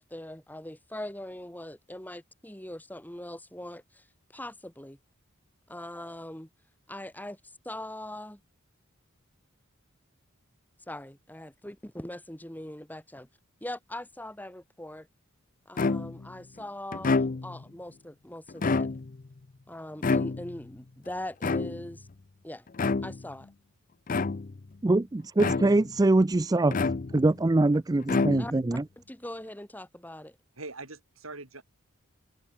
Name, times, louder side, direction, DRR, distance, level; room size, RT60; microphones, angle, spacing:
voice 1, 0.0-5.0 5.7-6.5 6.9-7.4 7.6-8.4 10.9-13.3 13.6-15.1 15.7-18.9 19.7-22.1 22.4-22.7 23.0-23.5 28.4-28.5 29.0-30.4, left 1 dB, 10° left, 2.9 m, -41 dB
sound 1, 15.8-16.3 16.9-17.7 18.5-19.3 20.0-20.7 21.4-22.1 22.7-23.3 24.1-24.7 25.4-26.0 26.7-27.4 28.0-28.8, left 3 dB, 40° left, 0.5 m, -28 dB
voice 2, 24.8-26.8 27.1-28.8, right 2 dB, 20° right, 0.4 m, -23 dB
voice 3, 30.5-31.6, right 3 dB, 80° right, 6.7 m, -42 dB
head